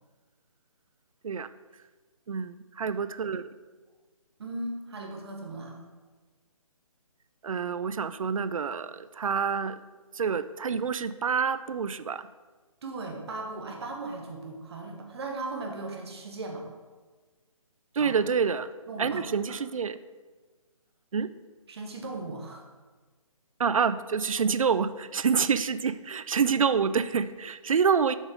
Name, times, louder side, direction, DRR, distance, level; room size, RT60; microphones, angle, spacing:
voice 1, 2.3-3.4 7.4-9.8 10.1-12.3 18.0-18.7 19.0-20.0 21.1-21.3 23.6-28.2, right 6 dB, 70° right, 14 dB, 0.4 m, -27 dB
voice 2, 4.4-5.8 12.8-16.6 18.0-18.2 18.9-19.5 21.7-22.6, right 2 dB, 45° right, 1 dB, 1.2 m, -37 dB
6.5 x 4.9 x 4.8 m, 1.3 s
figure-of-eight pair, 145°, 18 cm